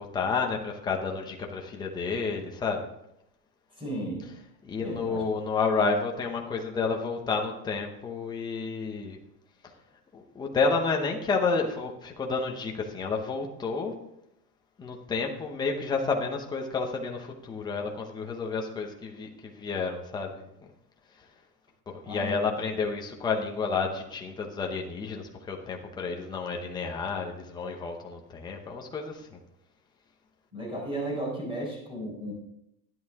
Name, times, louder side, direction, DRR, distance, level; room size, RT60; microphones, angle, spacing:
voice 1, 0.0-2.9 4.6-9.2 10.1-13.9 14.8-20.5 21.9-29.4, left 4 dB, 10° left, 1 dB, 0.8 m, -30 dB
voice 2, 3.7-4.3 4.8-5.2 22.0-22.6 30.5-32.3, right 1 dB, 10° right, -3 dB, 4.2 m, -34 dB
12.5 x 10.5 x 3.6 m, 0.80 s
supercardioid pair, 170°, 44 cm